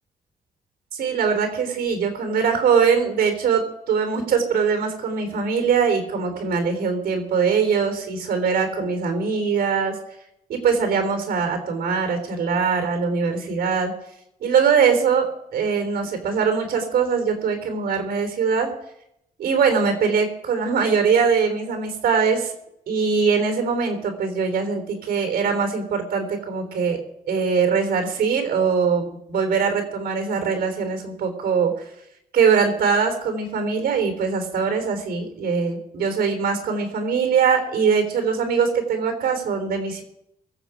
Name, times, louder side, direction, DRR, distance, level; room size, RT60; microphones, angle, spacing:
voice 1, 0.9-10.0 10.5-13.9 14.4-18.7 19.4-22.5 22.9-27.0 27.3-31.9 32.3-40.0, right 6 dB, 85° right, 5 dB, 3.7 m, -22 dB
23.5 x 8.1 x 5.0 m, 0.78 s
wide cardioid pair, 150°, 16 cm